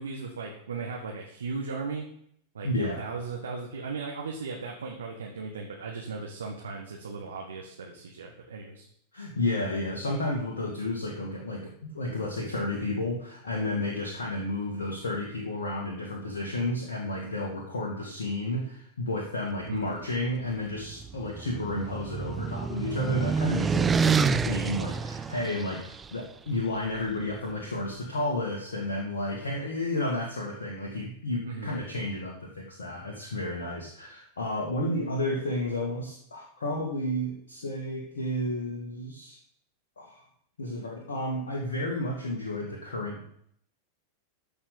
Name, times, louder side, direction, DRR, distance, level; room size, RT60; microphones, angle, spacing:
voice 1, 0.0-2.1 2.5-8.8 19.7-20.0 31.4-31.8, right 4 dB, 70° right, 0 dB, 1.8 m, -37 dB
voice 2, 2.6-3.0 9.1-39.4 40.0-40.3 40.6-43.3, left 1 dB, 70° left, -1 dB, 2.0 m, -32 dB
sound 1, 20.8-26.0, right 5 dB, 15° right, 0.5 m, -28 dB
13.5 x 5.4 x 7.1 m, 0.68 s
figure-of-eight pair, 90°, 0 cm